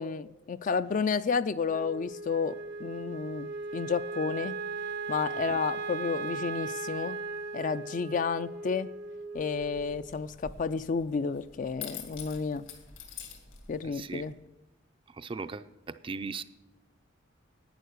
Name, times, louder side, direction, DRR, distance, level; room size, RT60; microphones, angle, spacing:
voice 1, 0.0-4.6 5.1-7.2 7.5-8.9 9.3-12.6 13.7-14.3, left 5 dB, 40° left, 13 dB, 0.4 m, -31 dB
Wind instrument woodwind instrument, 1.7-10.1, right 4 dB, 55° right, 0.7 m, -38 dB
sound 1, 9.3-14.3, left 7 dB, 75° left, 2.3 m, -47 dB
voice 2, 13.9-14.2 15.2-16.4, right 4 dB, 25° right, 12 dB, 0.4 m, -38 dB
11.5 x 9.2 x 6.5 m, 0.95 s
head